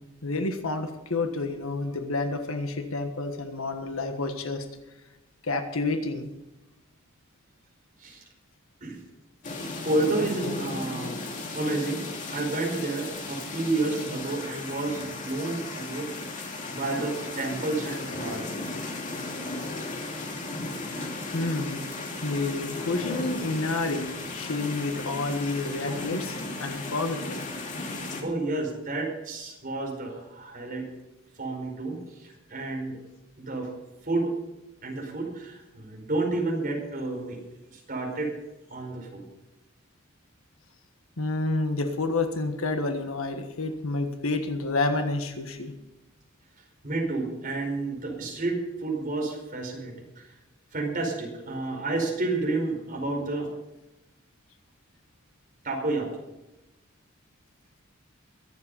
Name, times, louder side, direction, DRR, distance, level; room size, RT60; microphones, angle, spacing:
voice 1, 0.2-4.6 5.4-6.3 21.3-21.8 22.2-27.5 41.2-45.7, left 3 dB, 90° left, 6 dB, 1.5 m, -29 dB
sound 1, 9.4-28.2, left 2 dB, 40° left, 2.6 m, -35 dB
voice 2, 9.8-11.2 11.5-12.0 12.3-18.6 28.2-30.9 31.4-33.0 33.4-33.7 34.0-34.3 34.8-37.4 37.7-38.3 38.7-39.2 46.8-50.3 50.7-53.5 55.6-56.1, right 2 dB, 40° right, 0 dB, 4.9 m, -30 dB
23.0 x 7.7 x 5.5 m, 0.99 s
head